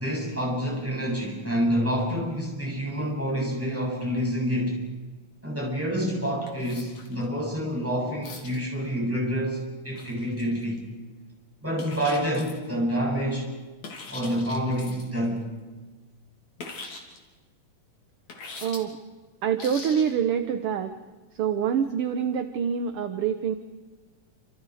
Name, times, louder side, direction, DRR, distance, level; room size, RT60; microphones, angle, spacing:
voice 1, 0.0-4.8 5.4-10.8 11.6-13.5 14.1-15.4, equal, 5° right, -2 dB, 7.7 m, -28 dB
sound 1, 6.5-7.2 8.2-8.6 9.9-10.8 11.8-12.7 13.8-15.2 16.6-17.2 18.3-18.8 19.6-20.1, left 3 dB, 60° left, 4.5 m, -41 dB
voice 2, 18.6-19.0 19.4-20.9 21.3-23.6, right 8 dB, 60° right, 8 dB, 1.6 m, -26 dB
29.0 x 27.5 x 5.0 m, 1.3 s
omnidirectional pair, 3.6 m